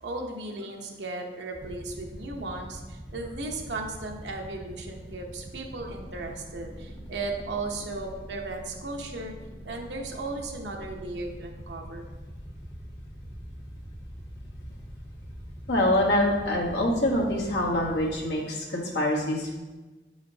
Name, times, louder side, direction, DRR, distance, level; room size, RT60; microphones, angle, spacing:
voice 1, 0.0-9.3 9.6-12.1, right 2 dB, 85° right, 2 dB, 0.9 m, -36 dB
sound 1, 1.5-18.2, equal, 20° left, 0.7 m, -43 dB
voice 2, 15.7-19.6, left 1 dB, 85° left, -2 dB, 1.3 m, -25 dB
8.2 x 4.9 x 2.8 m, 1.2 s
head